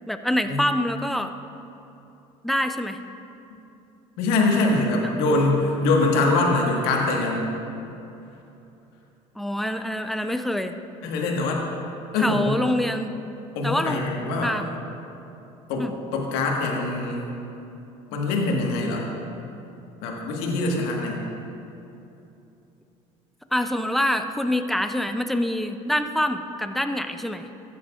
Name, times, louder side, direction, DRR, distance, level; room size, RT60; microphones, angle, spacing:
voice 1, 0.1-1.3 2.4-3.0 5.0-5.1 9.4-10.8 12.2-13.2 13.6-14.0 14.4-14.7 15.8-15.9 23.5-27.5, left 1 dB, ahead, 8 dB, 0.6 m, -25 dB
voice 2, 4.2-7.5 11.0-11.6 12.1-12.5 13.5-14.6 15.7-17.3 18.1-19.1 20.0-21.2, left 2 dB, 70° left, -1 dB, 1.7 m, -23 dB
14.5 x 9.4 x 2.5 m, 2.9 s
hypercardioid pair, 70°, 17 cm